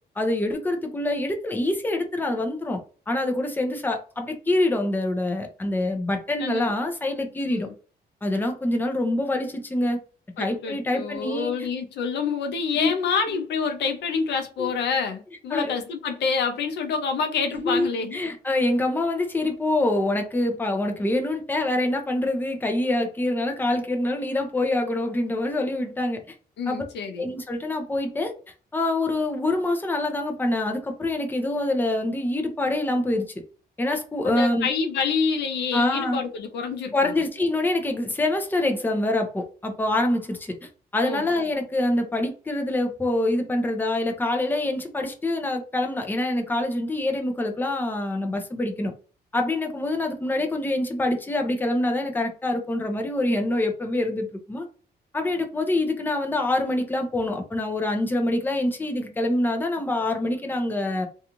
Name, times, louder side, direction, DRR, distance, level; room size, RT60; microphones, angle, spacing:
voice 1, 0.2-2.8 3.1-7.7 8.2-10.0 10.4-11.7 12.7-12.9 13.3-13.4 14.6-14.7 15.5-15.8 17.5-26.2 26.7-26.8 27.2-28.3 28.7-33.3 33.8-34.7 35.7-36.2 36.9-40.5 40.9-48.9 49.3-54.7 55.1-61.1, left 1 dB, 10° left, 0.5 m, -25 dB
voice 2, 6.4-6.7 7.4-7.7 10.4-18.2 26.6-27.3 34.2-37.2 41.0-41.2, left 5 dB, 90° left, 0.6 m, -27 dB
2.5 x 2.4 x 2.9 m
cardioid pair, 120°, 17 cm